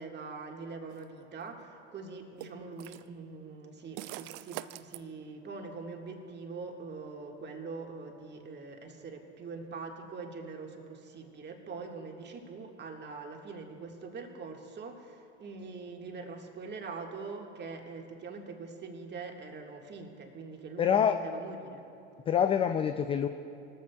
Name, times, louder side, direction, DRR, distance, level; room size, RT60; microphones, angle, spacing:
voice 1, 0.0-21.8, right 4 dB, 25° right, 2 dB, 1.8 m, -43 dB
sound 1, 0.9-1.0 2.4-3.1 4.0-5.0, right 16 dB, 45° right, 0.5 m, -43 dB
voice 2, 20.8-21.2 22.3-23.3, left 8 dB, 15° left, 8 dB, 0.3 m, -26 dB
20.5 x 14.0 x 2.3 m, 2.7 s
hypercardioid pair, 90°, 37 cm